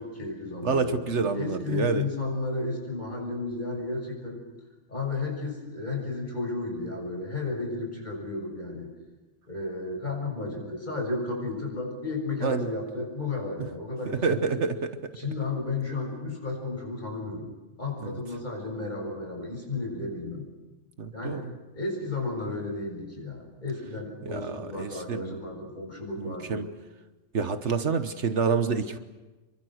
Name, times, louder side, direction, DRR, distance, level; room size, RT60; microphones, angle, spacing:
voice 1, 0.0-4.4 4.9-8.9 9.5-14.6 15.2-17.5 17.8-20.5 21.1-21.5 21.7-26.7, left 3 dB, 40° left, 1 dB, 7.2 m, -33 dB
voice 2, 0.6-2.0 12.4-12.7 14.1-15.1 18.0-18.1 21.0-21.5 24.3-25.4 26.2-26.7 27.3-29.0, right 5 dB, 70° right, 9 dB, 1.5 m, -28 dB
29.0 x 23.5 x 6.5 m, 1.2 s
omnidirectional pair, 1.3 m